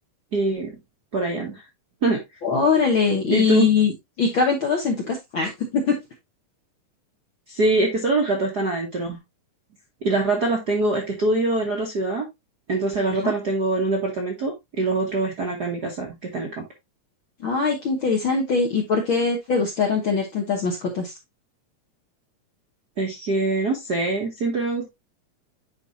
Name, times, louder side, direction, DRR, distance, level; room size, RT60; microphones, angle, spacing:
voice 1, 0.3-0.7 1.1-1.6 2.0-2.2 3.3-3.7 7.5-9.2 10.0-12.3 12.7-16.6 23.0-24.9, right 2 dB, 50° right, 0 dB, 1.2 m, -24 dB
voice 2, 2.4-3.9 4.2-5.9 13.2-13.3 17.4-21.1, left 5 dB, 60° left, 1 dB, 1.3 m, -22 dB
9.9 x 4.1 x 2.7 m, 0.20 s
omnidirectional pair, 3.6 m